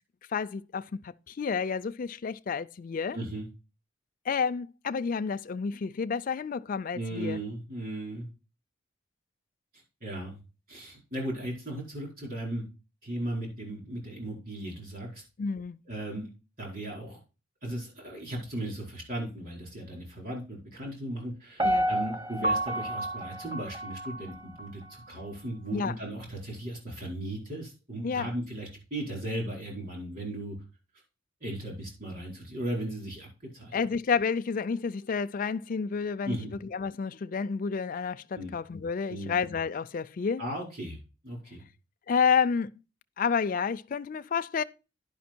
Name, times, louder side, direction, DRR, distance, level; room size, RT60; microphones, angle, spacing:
voice 1, 0.3-3.2 4.3-7.4 15.4-15.8 21.6-21.9 25.7-25.9 28.0-28.3 33.7-40.4 42.1-42.7 43.2-44.6, left 6 dB, 45° left, 0.4 m, -30 dB
voice 2, 3.1-3.5 6.9-8.3 10.0-10.4 10.7-12.6 13.0-15.2 15.9-16.3 16.6-17.2 17.6-30.6 31.4-33.8 36.2-36.5 38.3-38.5 39.1-39.3 40.4-41.0 41.2-41.6, right 1 dB, 45° right, 4.6 m, -36 dB
Piano, 21.6-24.7 25.1-25.2, right 1 dB, 25° right, 1.0 m, -30 dB
10.5 x 5.7 x 4.4 m
head